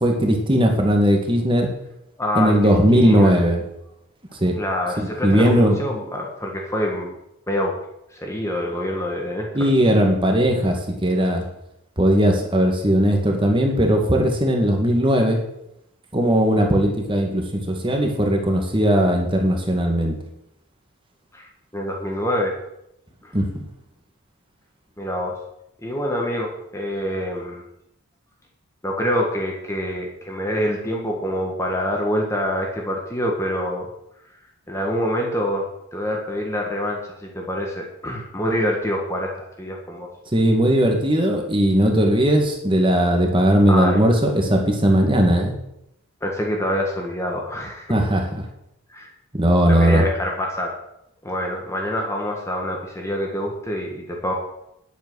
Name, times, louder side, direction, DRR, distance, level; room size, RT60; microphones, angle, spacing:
voice 1, 0.0-1.7 2.4-3.6 4.4-4.5 5.0-5.8 9.5-11.4 12.0-15.4 16.1-20.1 23.3-23.5 40.3-45.5 47.9-48.4 49.3-50.0, equal, 20° right, 2 dB, 1.9 m, -18 dB
voice 2, 2.2-3.3 4.6-7.1 7.5-7.7 8.1-9.6 21.3-21.5 21.7-22.5 23.2-23.3 25.0-25.4 25.8-27.6 28.8-33.9 34.7-40.1 43.7-44.0 46.2-48.0 48.9-49.1 49.6-50.7 51.2-54.3, equal, 15° left, 0 dB, 1.5 m, -26 dB
10.5 x 8.2 x 6.3 m, 0.81 s
head